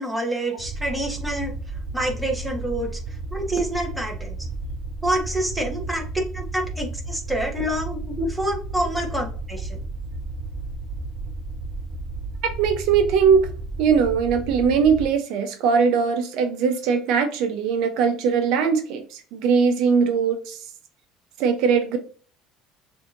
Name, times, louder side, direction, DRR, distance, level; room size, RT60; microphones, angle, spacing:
voice 1, 0.0-1.5 1.9-2.9 3.3-4.4 5.0-9.8, right 1 dB, ahead, -1 dB, 1.3 m, -27 dB
sound 1, 0.6-15.1, right 2 dB, 30° right, 2.2 m, -33 dB
voice 2, 12.4-13.4 13.8-20.6 21.4-22.0, right 6 dB, 70° right, 7 dB, 0.7 m, -20 dB
6.2 x 2.8 x 2.6 m, 0.42 s
supercardioid pair, 105°, 0 cm